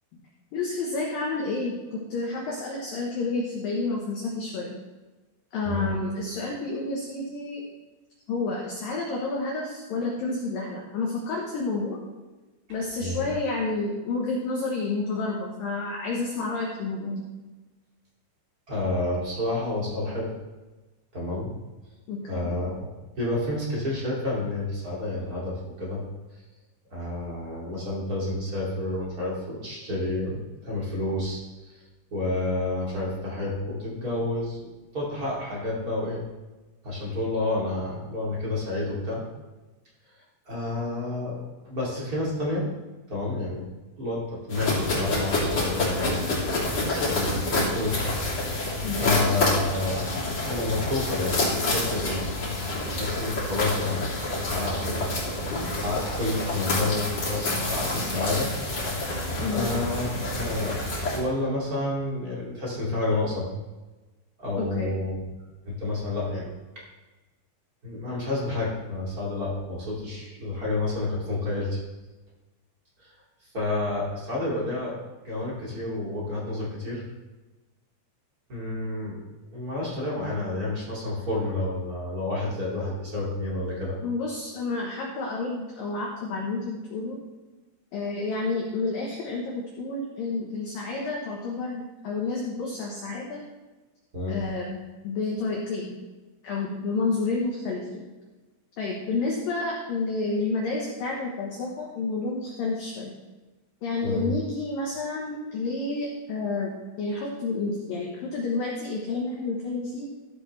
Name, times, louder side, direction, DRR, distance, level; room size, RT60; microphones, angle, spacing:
voice 1, 0.5-4.8 5.5-7.6 8.3-12.0 12.7-17.3 22.1-22.6 48.8-49.2 59.4-59.8 64.6-64.9 84.0-87.2 87.9-93.4 94.3-95.9 96.4-98.1 98.8-103.1 103.8-106.7 107.0-110.1, left 3 dB, 70° left, -1 dB, 2.2 m, -30 dB
voice 2, 18.7-20.3 21.1-21.5 22.3-22.9 23.2-26.0 26.9-31.7 32.1-34.7 34.9-36.2 36.8-39.2 40.5-41.4 41.6-42.7 43.1-43.6 44.0-48.1 49.0-50.0 50.4-52.2 52.8-55.1 55.5-58.5 59.5-60.8 61.1-63.5 64.4-65.3 65.6-66.5 66.7-66.8 67.8-71.8 73.0-73.1 73.5-74.9 75.2-77.0 78.5-79.2 79.5-84.0 94.1-94.4 104.0-104.3, left 2 dB, 30° right, -5 dB, 1.8 m, -30 dB
sound 1, 44.5-61.2, left 2 dB, 30° left, 3.5 m, -28 dB
14.5 x 8.1 x 3.3 m, 1.2 s
omnidirectional pair, 5.7 m